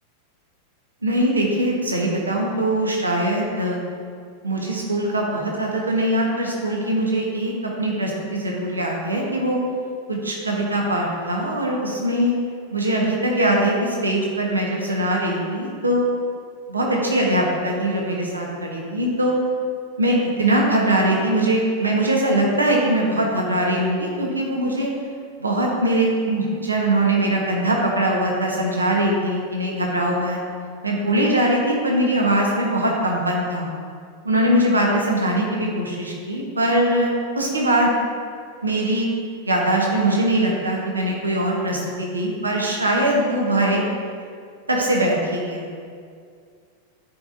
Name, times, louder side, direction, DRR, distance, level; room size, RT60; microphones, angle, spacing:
voice 1, 1.0-3.8 4.4-9.6 10.1-12.3 12.7-16.1 16.7-19.4 20.0-24.9 25.4-30.4 30.8-33.7 34.2-37.9 38.6-39.1 39.4-43.8 44.7-45.6, right 1 dB, 80° right, -1 dB, 1.1 m, -21 dB
11.0 x 4.9 x 2.6 m, 2.2 s
figure-of-eight pair, 90°, 0 cm